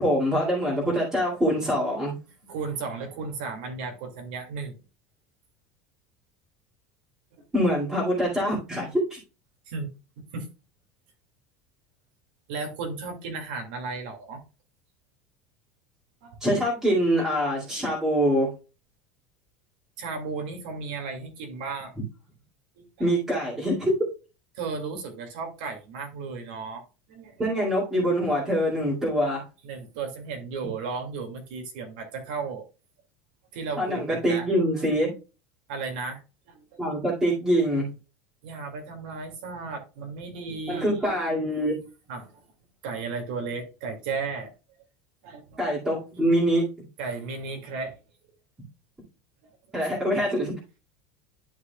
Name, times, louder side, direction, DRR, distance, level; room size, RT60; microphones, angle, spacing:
voice 1, 0.0-2.1 7.5-9.2 16.4-18.5 23.0-23.9 27.4-29.4 33.8-35.1 36.8-37.9 40.7-41.7 45.6-46.6 49.7-50.5, equal, 10° right, -7 dB, 2.2 m, -24 dB
voice 2, 2.4-4.7 9.7-9.9 10.2-10.5 12.5-14.4 16.2-16.4 17.8-17.9 20.0-21.9 22.8-23.1 24.5-26.8 27.1-27.5 29.6-32.7 33.5-34.5 35.7-36.2 36.5-36.8 38.4-41.4 42.1-42.4 42.8-44.5 45.2-45.6 46.1-46.3 47.0-48.0 49.8-49.9, right 4 dB, 75° right, 4 dB, 2.2 m, -35 dB
11.0 x 4.8 x 2.3 m, 0.31 s
cardioid pair, 175°, 5 cm